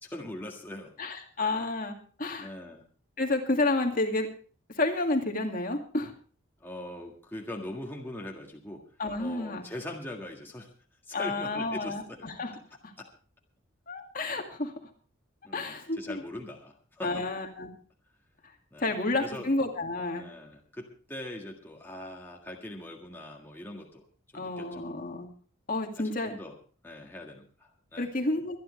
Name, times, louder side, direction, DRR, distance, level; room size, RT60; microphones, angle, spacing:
voice 1, 0.0-0.9 2.4-2.9 6.6-8.8 9.2-10.7 11.1-12.2 13.0-13.1 15.4-17.3 18.7-19.5 20.1-24.0 24.3-24.8 26.0-26.5 26.8-28.1, left 1 dB, 10° left, -1 dB, 1.8 m, -41 dB
voice 2, 1.0-2.5 3.2-4.3 4.7-6.1 9.0-9.6 11.1-12.5 12.8-12.9 13.9-14.7 15.5-16.2 17.0-17.7 18.8-20.2 24.3-25.3 25.7-26.4 28.0-28.6, left 2 dB, 40° left, 3 dB, 2.2 m, -30 dB
24.5 x 10.5 x 3.2 m, 0.40 s
head